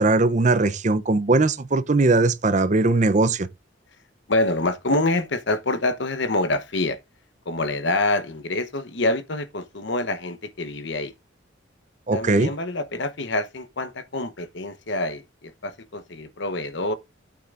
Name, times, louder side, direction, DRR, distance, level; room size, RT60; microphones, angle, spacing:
voice 1, 0.0-3.5 12.1-12.5, right 3 dB, 35° right, 0.6 m, -20 dB
voice 2, 4.3-7.0 7.4-11.1 12.1-16.9, left 2 dB, 65° left, 1.0 m, -26 dB
13.0 x 8.6 x 2.5 m
head